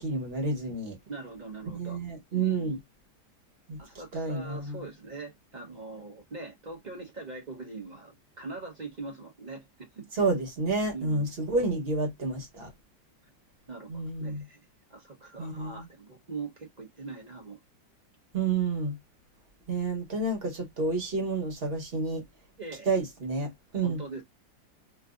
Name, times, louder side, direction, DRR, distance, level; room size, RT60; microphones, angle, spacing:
voice 1, 0.0-1.0 1.7-2.8 3.7-3.8 4.1-4.8 10.2-12.7 13.9-14.4 15.4-15.8 18.3-19.0 19.7-22.2 22.9-24.0, right 3 dB, 40° right, 1.1 m, -30 dB
voice 2, 1.1-2.0 2.3-2.7 3.8-10.1 10.9-11.3 13.7-14.6 14.9-17.6 22.6-22.9 23.8-24.2, right 3 dB, 55° right, 0.5 m, -42 dB
3.2 x 2.6 x 2.4 m
omnidirectional pair, 2.0 m